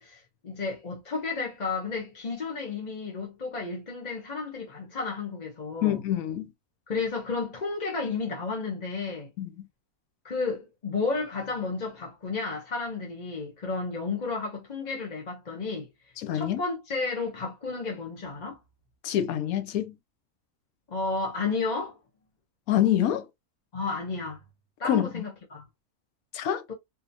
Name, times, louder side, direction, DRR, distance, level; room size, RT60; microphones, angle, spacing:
voice 1, 0.0-6.0 6.9-9.3 10.2-15.9 16.3-18.6 20.9-22.0 23.7-24.4 24.8-25.6 26.7-26.8, left 4 dB, 35° left, 0.8 m, -32 dB
voice 2, 5.8-6.5 9.4-9.7 16.2-16.6 19.0-20.0 22.7-23.3 24.8-25.2 26.3-26.6, left 11 dB, 70° left, 1.1 m, -26 dB
4.0 x 2.8 x 2.6 m
omnidirectional pair, 1.6 m